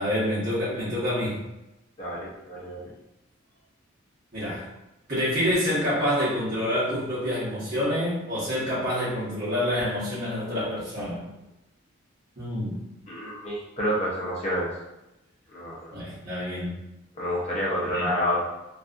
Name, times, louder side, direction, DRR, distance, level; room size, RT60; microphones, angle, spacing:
voice 1, 0.0-1.4 4.3-4.7 5.1-11.2 12.4-12.8 15.9-16.7 17.9-18.1, equal, 45° right, -11 dB, 0.9 m, -27 dB
voice 2, 2.0-2.9 13.1-14.7 15.5-16.0 17.2-18.4, equal, 30° left, -6 dB, 0.6 m, -29 dB
2.6 x 2.4 x 2.4 m, 0.95 s
head